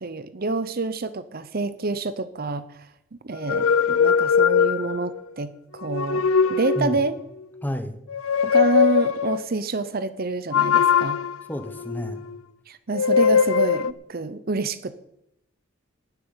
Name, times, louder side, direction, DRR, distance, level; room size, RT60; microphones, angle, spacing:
voice 1, 0.0-2.6 3.2-6.2 6.5-7.2 8.4-11.2 12.7-15.0, right 3 dB, 45° right, 13 dB, 0.7 m, -27 dB
sound 1, 3.4-5.2 5.8-7.1 8.1-9.5 10.5-12.4 12.9-13.9, left 7 dB, 80° left, 0.6 m, -21 dB
voice 2, 7.6-8.0 11.5-12.2, left 1 dB, 10° left, 8 dB, 1.0 m, -30 dB
11.5 x 7.8 x 9.7 m, 0.82 s
head